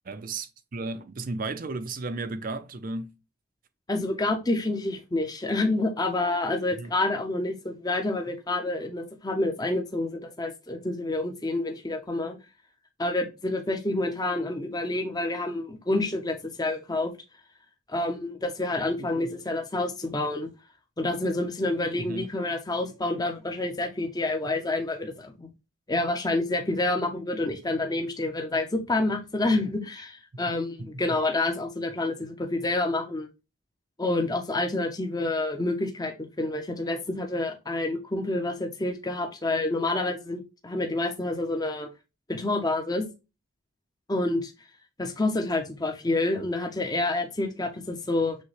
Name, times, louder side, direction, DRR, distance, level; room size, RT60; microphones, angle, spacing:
voice 1, 0.0-3.1 6.8-6.9 19.0-19.4 22.0-22.3 30.3-30.5 30.8-31.2, right 3 dB, 40° right, 0.5 m, -35 dB
voice 2, 3.9-12.4 13.0-17.1 17.9-20.5 21.0-25.5 25.9-33.3 34.0-41.9 42.3-43.1 44.1-44.5 45.0-48.4, left 2 dB, 20° left, 0.6 m, -28 dB
6.3 x 2.2 x 3.2 m
head